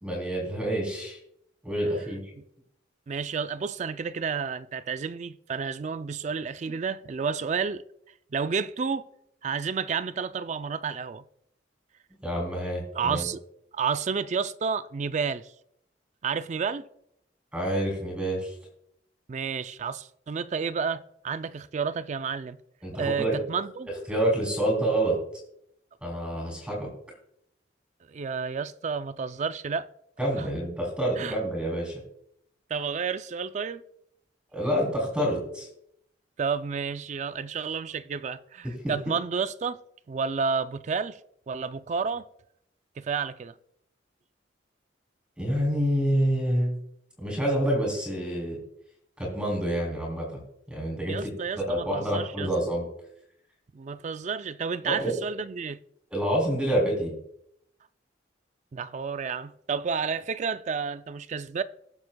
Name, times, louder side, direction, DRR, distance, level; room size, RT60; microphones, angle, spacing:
voice 1, 0.0-1.2 1.6-2.2 12.2-13.3 17.5-18.5 22.8-23.4 24.1-25.1 26.0-26.9 30.2-32.0 34.5-35.7 38.8-38.9 45.4-46.7 47.2-48.6 49.2-50.4 50.7-52.8 54.8-55.1 56.1-57.1, right 1 dB, 5° right, 3.2 m, -27 dB
voice 2, 3.1-7.8 8.3-9.1 9.4-11.2 12.9-13.4 13.7-15.5 16.2-16.9 19.3-22.6 23.0-23.9 28.1-29.9 30.4-30.5 31.2-31.4 32.7-33.8 36.4-39.8 40.1-41.2 41.5-42.2 43.0-43.5 51.1-52.5 53.7-55.8 58.7-61.6, right 5 dB, 40° right, 0.3 m, -30 dB
21.0 x 7.2 x 2.2 m
head